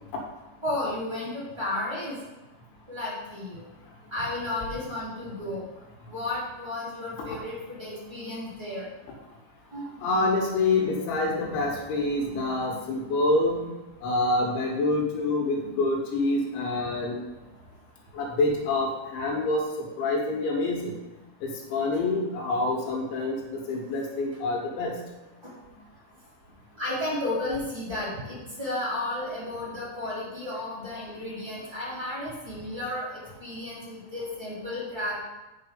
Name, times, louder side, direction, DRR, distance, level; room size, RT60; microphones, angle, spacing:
voice 1, 0.6-2.2 2.9-3.6 4.1-5.6 6.1-8.9 9.7-9.9 25.4-25.5 26.8-35.2, left 1 dB, 5° right, -9 dB, 2.6 m, -33 dB
voice 2, 10.0-13.7 14.0-17.2 18.1-19.6 20.0-20.9 21.4-25.0, left 2 dB, 80° left, 0 dB, 3.8 m, -26 dB
8.5 x 5.8 x 5.2 m, 1.0 s
omnidirectional pair, 5.4 m